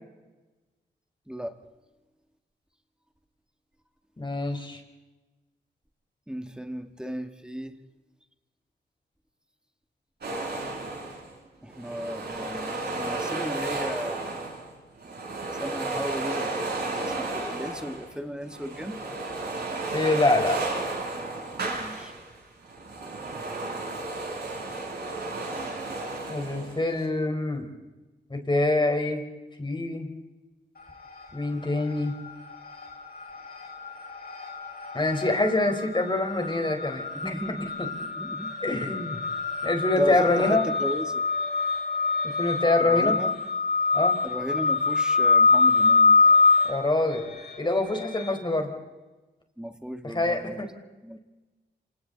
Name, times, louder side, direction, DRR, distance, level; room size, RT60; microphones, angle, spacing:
voice 1, 1.3-1.6 6.3-7.7 11.6-14.3 15.6-19.0 21.7-22.1 37.1-37.9 38.2-38.5 40.0-41.2 42.8-43.3 44.2-46.2 49.6-50.7 51.0-51.2, equal, 5° right, 7 dB, 1.9 m, -35 dB
voice 2, 4.2-4.8 19.9-20.6 26.3-27.7 28.3-29.2 29.6-30.1 31.3-32.1 34.9-37.3 38.6-39.2 39.6-40.6 42.4-43.2 43.9-44.1 46.7-47.3 47.6-48.7 50.0-50.7, left 2 dB, 25° left, 4 dB, 4.6 m, -25 dB
sound 1, 10.2-11.3 11.7-14.7 15.0-18.1 18.4-22.3 22.6-26.9, right 2 dB, 60° right, 7.8 m, -33 dB
sound 2, 30.8-31.4 31.7-48.3, left 3 dB, 55° left, 5.1 m, -25 dB
27.5 x 26.5 x 4.1 m, 1.1 s
cardioid pair, 75°, 18 cm